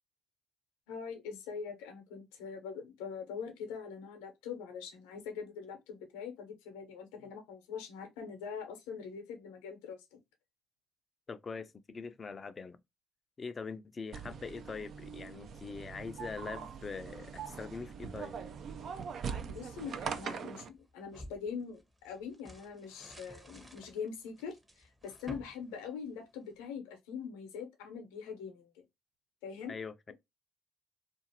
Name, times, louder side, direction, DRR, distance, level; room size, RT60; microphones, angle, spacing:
voice 1, 0.9-10.2 19.5-28.8 29.4-29.7, left 6 dB, 85° left, 0.7 m, -43 dB
voice 2, 11.3-12.8 13.4-18.4 29.7-30.1, left 5 dB, 40° left, 0.4 m, -43 dB
sound 1, 14.1-20.7, right 6 dB, 60° right, 0.4 m, -42 dB
sound 2, 18.1-20.1 20.6-26.6, equal, 15° right, 0.8 m, -54 dB
2.4 x 2.4 x 2.7 m
hypercardioid pair, 60°, 0 cm